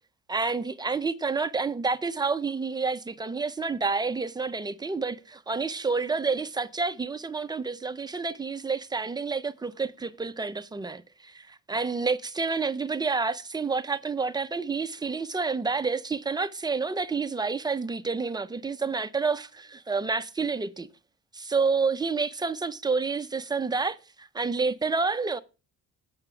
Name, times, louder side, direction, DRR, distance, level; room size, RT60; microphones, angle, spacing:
voice 1, 0.3-20.9 21.3-25.4, right 4 dB, 10° right, 0.4 m, -29 dB
8.9 x 5.8 x 5.6 m
cardioid pair, 170°, 36 cm